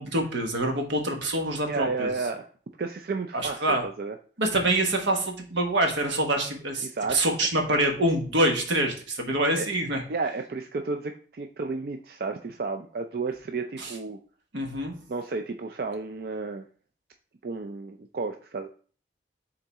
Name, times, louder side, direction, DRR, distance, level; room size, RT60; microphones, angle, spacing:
voice 1, 0.0-2.1 3.3-3.8 4.4-10.0 13.8-13.9 14.5-14.9, right 1 dB, 85° right, 3 dB, 1.3 m, -26 dB
voice 2, 1.7-2.5 2.8-4.2 6.8-7.2 9.5-9.7 10.1-14.2 15.1-16.7 17.4-18.7, right 4 dB, 55° right, 5 dB, 0.4 m, -32 dB
6.9 x 3.9 x 3.5 m, 0.42 s
head